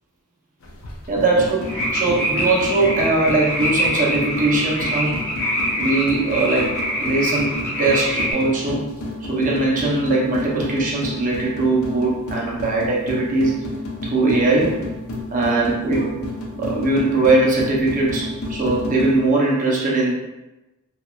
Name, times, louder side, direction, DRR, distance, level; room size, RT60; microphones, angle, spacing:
sound 1, 0.6-19.2, left 2 dB, 65° left, 0.5 m, -31 dB
voice 1, 1.1-5.2 5.8-8.8 9.2-13.7 14.0-14.8 15.3-16.3 16.6-20.1, right 2 dB, 35° right, -3 dB, 0.5 m, -20 dB
sound 2, 1.6-8.3, equal, 50° left, 0.9 m, -24 dB
2.8 x 2.3 x 2.2 m, 1.0 s
head